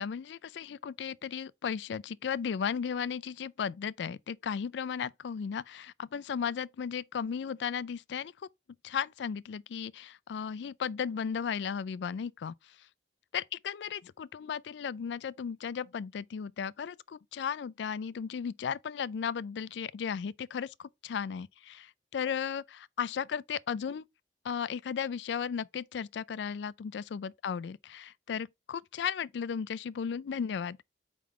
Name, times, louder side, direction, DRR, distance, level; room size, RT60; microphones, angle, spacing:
voice 1, 0.0-8.3 8.8-12.8 13.3-24.0 24.4-30.8, left 7 dB, 70° left, 0.3 m, -35 dB
8.4 x 3.7 x 3.6 m
head